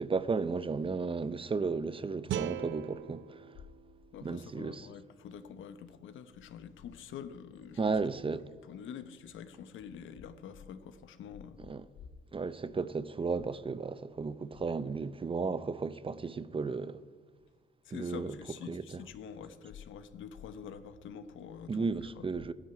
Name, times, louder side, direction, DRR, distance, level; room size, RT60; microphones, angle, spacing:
voice 1, 0.0-3.5 4.2-4.9 7.8-8.5 11.7-11.8 12.3-17.0 17.9-18.3 18.7-19.0 21.7-22.5, right 4 dB, 25° right, 0.7 m, -34 dB
sound 1, 2.3-5.4, right 10 dB, 65° right, 0.6 m, -41 dB
voice 2, 4.1-8.0 8.6-11.6 17.8-22.3, left 7 dB, 80° left, 1.1 m, -46 dB
12.5 x 10.5 x 9.1 m
cardioid pair, 90°, 20 cm